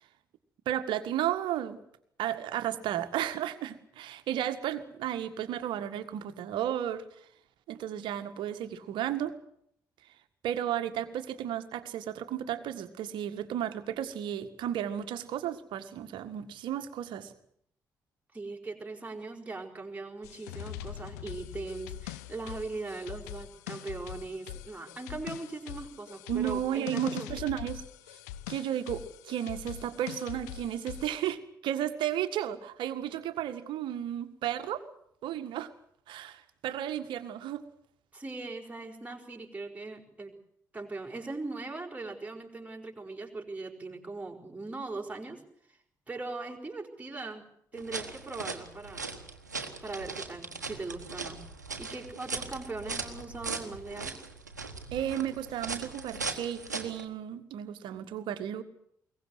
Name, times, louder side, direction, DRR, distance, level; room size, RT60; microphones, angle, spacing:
voice 1, 0.6-1.8 2.2-7.0 7.7-9.3 10.4-17.3 26.3-27.8 28.5-34.8 35.2-35.7 36.1-37.6 54.9-58.6, right 11 dB, 60° right, 10 dB, 1.7 m, -33 dB
voice 2, 18.3-27.3 38.1-40.4 40.7-45.4 46.1-47.5 47.7-49.1 49.8-51.4 51.8-54.2, right 3 dB, 15° right, 1 dB, 5.1 m, -40 dB
sound 1, 20.2-31.3, left 12 dB, 75° left, 0.8 m, -43 dB
sound 2, 47.7-57.0, right 4 dB, 85° right, 1.3 m, -39 dB
22.0 x 19.0 x 8.0 m, 0.69 s
figure-of-eight pair, 40°, 9 cm